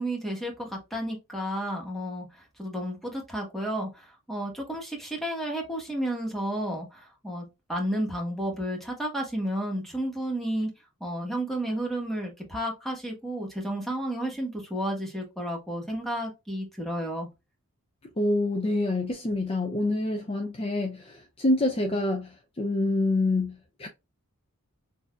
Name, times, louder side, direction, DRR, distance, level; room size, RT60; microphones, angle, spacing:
voice 1, 0.0-7.4 7.7-10.7 11.0-17.3, right 1 dB, ahead, 1.3 m, -32 dB
voice 2, 18.2-23.9, left 2 dB, 25° left, 0.5 m, -27 dB
6.3 x 2.7 x 2.4 m
head